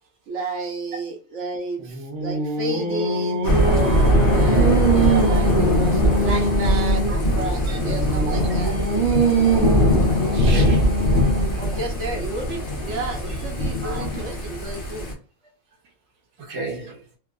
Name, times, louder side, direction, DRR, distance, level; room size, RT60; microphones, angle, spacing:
voice 1, 0.3-8.8 11.6-15.1, right 3 dB, 65° right, 1.0 m, -32 dB
Singing, 1.8-7.2 7.8-11.7, right 3 dB, 90° right, 1.3 m, -23 dB
Thunder / Rain, 3.4-15.1, equal, 45° left, 1.0 m, -21 dB
voice 2, 10.3-11.0 13.8-14.1 16.4-17.0, right 3 dB, 30° right, 0.8 m, -32 dB
3.6 x 2.9 x 2.3 m
omnidirectional pair, 1.4 m